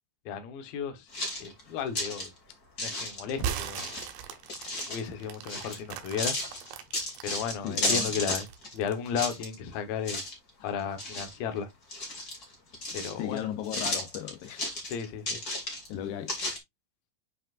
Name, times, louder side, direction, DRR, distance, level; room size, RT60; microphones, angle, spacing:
voice 1, 0.3-1.1 1.4-2.3 2.8-3.9 4.9-6.4 7.2-8.5 8.7-10.2 10.6-11.7 12.9-13.5 14.9-15.4, left 7 dB, 70° left, 2.4 m, -34 dB
sound 1, 1.1-2.3 2.8-3.4 3.7-5.0 5.5-5.8 6.2-8.7 9.0-9.7 10.0-10.5 10.8-11.6 11.9-13.4 13.6-15.9 16.3-16.6, left 2 dB, 30° left, 1.7 m, -33 dB
sound 2, 3.3-7.3 7.8-9.0, right 8 dB, 75° right, 3.2 m, -38 dB
voice 2, 7.6-8.1 10.6-10.7 13.2-14.8 15.9-16.4, left 11 dB, 85° left, 2.3 m, -36 dB
8.8 x 5.0 x 2.5 m
omnidirectional pair, 5.8 m